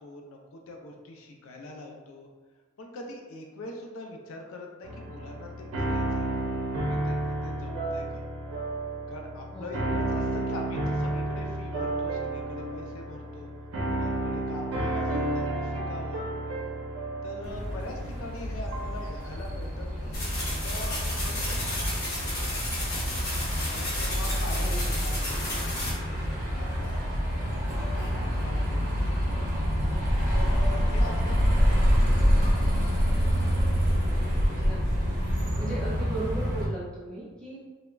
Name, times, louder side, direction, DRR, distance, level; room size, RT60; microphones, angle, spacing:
voice 1, 0.0-2.3 2.8-6.5 6.9-8.2 9.1-13.5 13.8-16.2 17.2-22.0 22.3-23.1 23.7-25.7 26.1-27.0 27.6-29.2 30.3-32.8, left 1 dB, 70° left, 1 dB, 0.4 m, -43 dB
sound 1, 4.8-21.1, right 1 dB, 75° right, 0.5 m, -32 dB
sound 2, 17.4-36.7, equal, 35° right, 0.7 m, -27 dB
sound 3, 20.1-25.9, left 1 dB, 45° left, 1.0 m, -33 dB
voice 2, 24.6-25.1 34.6-35.1 35.6-37.6, right 2 dB, 5° left, -7 dB, 0.5 m, -37 dB
3.2 x 2.0 x 2.3 m, 1.4 s
head